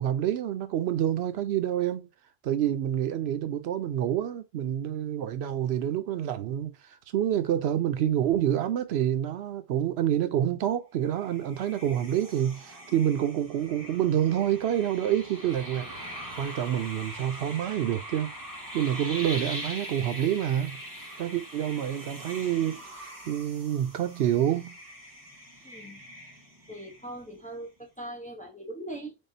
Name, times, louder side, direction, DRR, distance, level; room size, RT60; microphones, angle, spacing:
voice 1, 0.0-2.1 2.4-6.7 7.1-15.9 16.4-18.3 18.7-20.8 21.2-24.8, right 10 dB, 85° right, 0.8 m, -27 dB
sound 1, 11.1-27.4, equal, 20° right, 0.9 m, -42 dB
voice 2, 25.6-26.0 26.7-29.2, right 1 dB, 10° left, 0.7 m, -40 dB
3.7 x 3.6 x 2.6 m
omnidirectional pair, 1.1 m